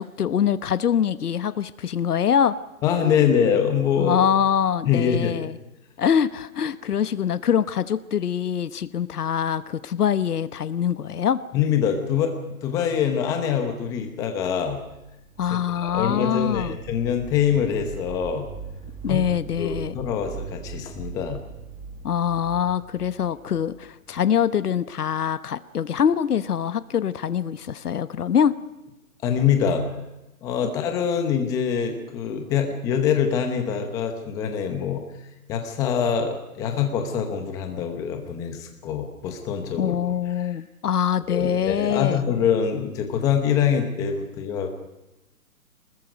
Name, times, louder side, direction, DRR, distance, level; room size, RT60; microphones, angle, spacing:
voice 1, 0.0-2.6 4.0-5.6 6.0-11.4 15.4-16.8 19.0-19.9 22.0-28.6 39.8-42.2, left 8 dB, 85° left, 14 dB, 1.1 m, -24 dB
voice 2, 2.8-4.2 4.8-5.3 11.5-14.8 15.5-18.5 19.1-19.2 19.6-21.4 29.2-29.9 30.4-35.0 35.5-39.9 40.4-40.5 41.3-44.7, left 8 dB, 10° left, 5 dB, 0.9 m, -24 dB
sound 1, 14.6-24.4, right 6 dB, 10° right, 1.6 m, -40 dB
26.5 x 20.5 x 5.3 m, 0.95 s
hypercardioid pair, 160°, 45 cm